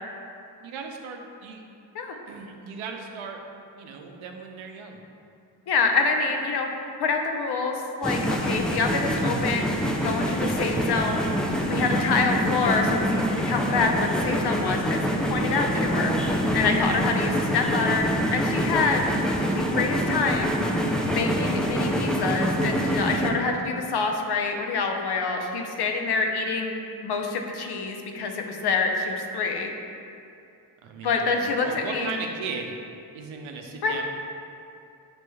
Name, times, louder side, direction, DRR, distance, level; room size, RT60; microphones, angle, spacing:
voice 1, 0.6-1.6 2.3-3.4 3.8-5.0 30.8-32.7 33.1-34.0, right 5 dB, 80° right, 3 dB, 0.6 m, -37 dB
voice 2, 5.7-6.7 7.0-9.7 10.0-15.0 15.3-16.2 16.5-19.0 19.5-20.6 21.1-26.8 27.0-29.7 31.0-32.1 33.8-34.0, left 4 dB, 55° left, 3 dB, 0.6 m, -26 dB
sound 1, 8.0-23.3, equal, ahead, 0.3 m, -25 dB
6.0 x 3.0 x 2.3 m, 2.6 s
supercardioid pair, 40°, 48 cm